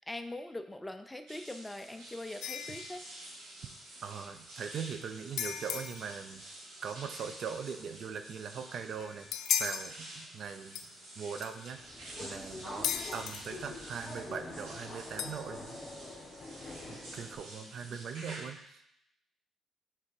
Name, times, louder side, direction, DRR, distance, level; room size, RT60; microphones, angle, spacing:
voice 1, 0.1-3.0 17.6-18.0, left 1 dB, 10° left, 8 dB, 0.4 m, -42 dB
sound 1, 1.3-18.4, right 1 dB, 90° right, 1.9 m, -49 dB
sound 2, 2.4-3.0 5.4-6.1 9.0-9.9 10.7-10.9 11.4-11.7 12.8-13.4 15.2-15.7, left 9 dB, 75° left, 0.3 m, -35 dB
voice 2, 4.0-6.4 6.8-9.3 9.6-10.9 11.2-11.8 12.2-16.2 16.9-18.9, right 6 dB, 60° right, 8 dB, 0.5 m, -41 dB
Subway metro underground, 11.7-17.4, left 2 dB, 35° left, 1.2 m, -46 dB
5.8 x 3.4 x 4.8 m, 0.78 s
cardioid pair, 90°, 0 cm